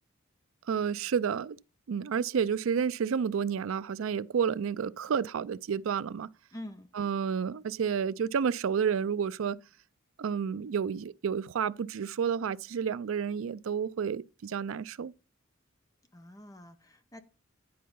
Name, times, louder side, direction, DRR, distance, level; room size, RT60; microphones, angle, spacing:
voice 1, 0.7-1.6 1.9-6.3 6.9-9.6 10.2-15.1, right 7 dB, 75° right, 0.4 m, -30 dB
voice 2, 6.5-6.9 16.1-17.2, left 1 dB, 15° left, 0.9 m, -46 dB
10.5 x 4.6 x 5.4 m
head